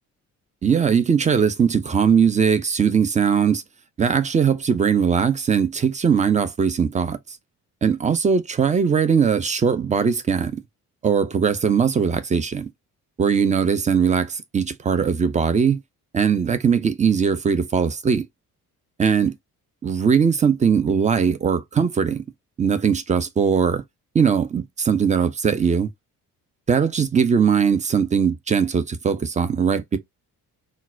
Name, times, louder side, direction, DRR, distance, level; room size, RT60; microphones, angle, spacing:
voice 1, 0.6-3.6 4.0-7.2 7.8-10.6 11.0-12.7 13.2-15.8 16.1-18.3 19.0-19.3 19.8-22.2 22.6-23.8 24.1-25.9 26.7-30.0, right 6 dB, 15° right, 0.4 m, -20 dB
3.8 x 2.1 x 2.5 m
figure-of-eight pair, 40°, 45 cm